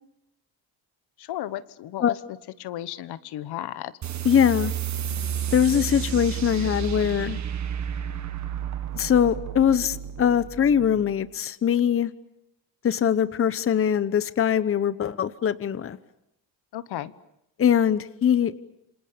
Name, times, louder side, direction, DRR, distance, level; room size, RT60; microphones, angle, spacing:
voice 1, 1.2-3.9 16.7-17.1, left 13 dB, 70° left, 14 dB, 1.3 m, -34 dB
sound 1, 4.0-11.1, right 8 dB, 45° right, 1.8 m, -31 dB
voice 2, 4.2-4.7 5.5-7.4 8.9-12.1 12.8-16.0 17.6-18.5, left 8 dB, 30° left, 14 dB, 1.0 m, -22 dB
28.0 x 26.5 x 6.9 m, 0.83 s
cardioid pair, 110°, 41 cm